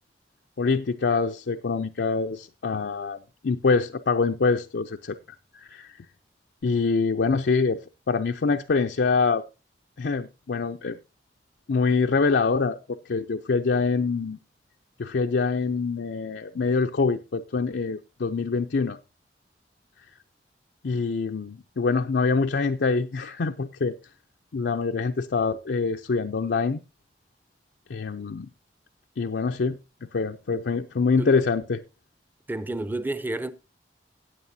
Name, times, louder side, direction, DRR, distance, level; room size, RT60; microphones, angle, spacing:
voice 1, 0.6-3.2 3.4-5.2 5.5-6.0 6.6-7.8 8.1-9.4 10.0-11.0 11.7-14.4 15.0-19.0 20.8-24.0 24.5-26.8 27.9-28.5 29.2-29.8 30.1-31.8, left 4 dB, 75° left, 0.5 m, -25 dB
voice 2, 32.5-33.5, right 2 dB, 10° right, 0.6 m, -30 dB
17.0 x 8.5 x 2.7 m
head